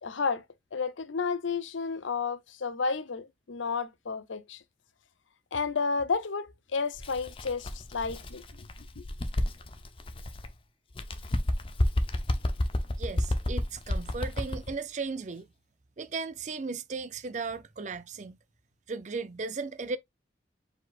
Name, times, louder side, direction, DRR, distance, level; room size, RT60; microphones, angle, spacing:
voice 1, 0.0-0.4 0.7-4.6 5.5-8.7 9.0-9.1, left 5 dB, 90° left, 0.6 m, -32 dB
Bird, 6.9-10.5 10.9-14.7, left 1 dB, 30° left, 0.6 m, -31 dB
voice 2, 13.0-15.5 16.0-18.4 18.9-20.0, right 4 dB, 40° right, 0.5 m, -36 dB
4.9 x 4.1 x 2.4 m
head